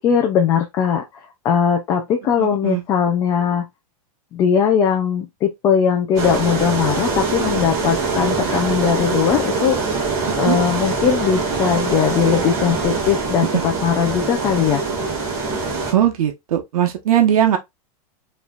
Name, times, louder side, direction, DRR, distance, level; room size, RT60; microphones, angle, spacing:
voice 1, 0.0-3.7 4.3-9.8 10.4-14.8, left 7 dB, 15° left, 0.4 m, -19 dB
voice 2, 2.4-2.8 10.5-10.6 15.9-17.6, right 11 dB, 75° right, 1.1 m, -18 dB
sound 1, 6.1-15.9, right 4 dB, 15° right, 1.6 m, -23 dB
5.1 x 3.2 x 2.4 m
supercardioid pair, 180°, 19 cm